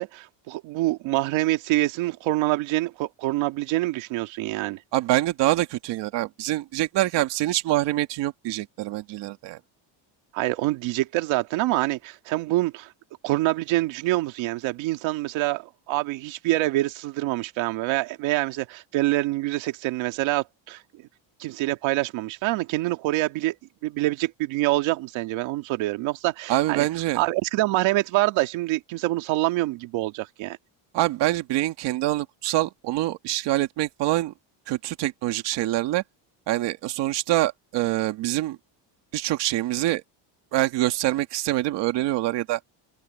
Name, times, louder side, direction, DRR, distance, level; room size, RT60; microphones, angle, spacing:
voice 1, 0.0-4.8 10.3-12.9 13.2-20.8 21.4-23.5 23.8-26.9 27.1-30.6, right 18 dB, 90° right, 1.9 m, -26 dB
voice 2, 4.9-9.6 26.5-27.2 30.9-34.3 34.7-36.0 36.5-38.6 39.1-40.0 40.5-42.6, right 16 dB, 65° right, 2.0 m, -25 dB
open air
cardioid pair, 180°, 45 cm